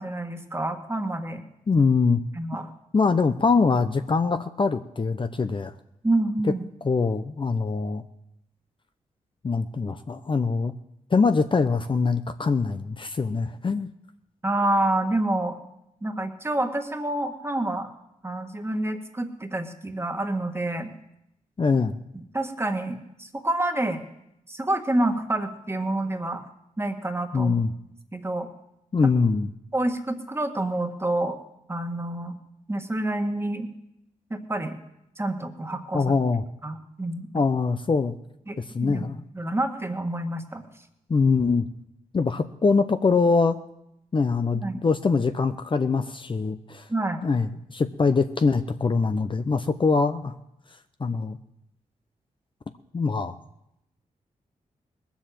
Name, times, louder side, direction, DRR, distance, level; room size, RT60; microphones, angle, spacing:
voice 1, 0.0-1.4 2.4-2.7 6.0-6.6 14.4-15.6 16.0-17.9 18.2-20.9 22.3-24.0 24.5-26.5 26.8-27.6 28.1-28.5 29.7-31.4 31.7-32.3 32.7-33.7 34.3-34.8 35.2-36.0 36.6-37.3 38.5-39.1 39.3-40.6 44.5-44.8 46.9-47.2, right 1 dB, 20° right, 5 dB, 1.7 m, -28 dB
voice 2, 1.7-2.2 2.9-5.7 6.8-8.0 9.4-10.7 11.1-13.9 21.6-22.0 27.3-27.7 28.9-29.5 35.9-36.4 37.3-38.2 38.6-39.2 41.1-41.7 42.1-43.6 44.1-46.9 47.2-50.3 51.0-51.4 52.9-53.3, left 4 dB, 35° left, 9 dB, 0.7 m, -23 dB
19.5 x 7.2 x 7.6 m, 0.82 s
cardioid pair, 65°, 14 cm